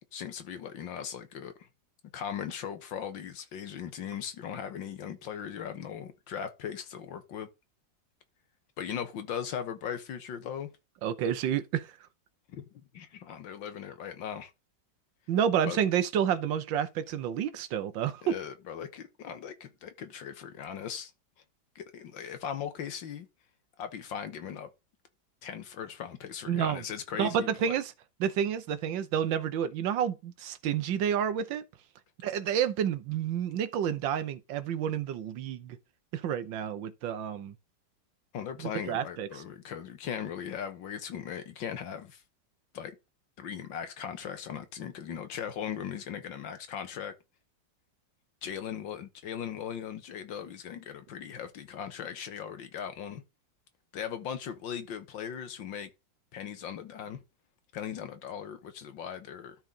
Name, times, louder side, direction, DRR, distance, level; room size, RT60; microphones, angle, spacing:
voice 1, 0.1-1.7 2.1-7.5 8.8-10.7 12.5-14.5 15.7-15.8 18.2-21.1 21.8-23.3 23.8-24.7 25.4-27.8 38.3-42.2 42.7-43.0 43.4-47.1 48.4-53.2 53.9-55.9 56.3-57.2 57.7-59.6, left 8 dB, 80° left, 1.9 m, -38 dB
voice 2, 11.0-11.9 15.3-18.3 26.5-26.8 27.2-27.9 28.2-31.6 32.2-35.8 36.1-37.5 38.6-39.3, right 9 dB, 90° right, 1.6 m, -29 dB
12.5 x 4.6 x 3.8 m
omnidirectional pair, 2.0 m